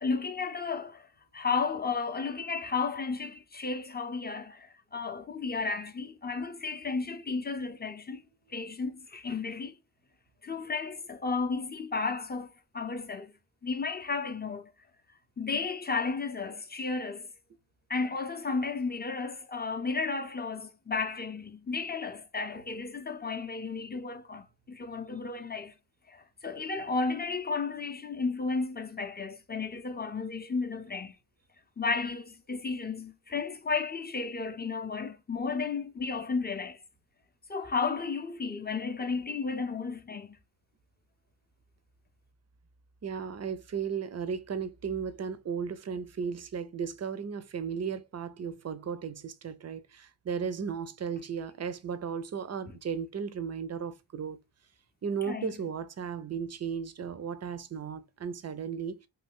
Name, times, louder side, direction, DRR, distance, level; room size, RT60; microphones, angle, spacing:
voice 1, 0.0-1.1 1.3-8.2 8.5-9.8 10.4-13.3 13.6-14.7 15.4-17.3 17.9-25.7 26.1-31.1 31.8-36.8 37.5-40.4 55.3-55.5, left 4 dB, 20° left, 0.5 m, -33 dB
voice 2, 43.0-54.4 55.0-59.0, right 6 dB, 35° right, 0.5 m, -35 dB
2.7 x 2.2 x 3.6 m
cardioid pair, 55°, 48 cm